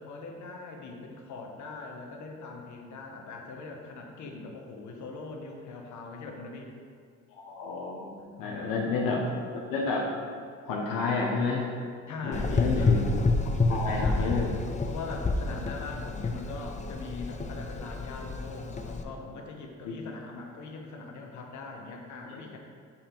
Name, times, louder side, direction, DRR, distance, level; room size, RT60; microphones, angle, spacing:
voice 1, 0.0-6.7 8.3-9.0 12.1-13.1 14.0-14.5 14.9-22.6, left 3 dB, 60° left, 1 dB, 1.0 m, -41 dB
voice 2, 7.4-8.1 8.4-9.3 9.5-10.2 10.6-11.7 12.2-13.0 13.7-14.5 19.8-20.0, left 4 dB, 80° left, -2 dB, 0.9 m, -30 dB
Gurgling / Engine, 12.3-19.0, left 3 dB, 20° left, 0.5 m, -29 dB
7.3 x 3.4 x 4.4 m, 2.1 s
supercardioid pair, 80°, 33 cm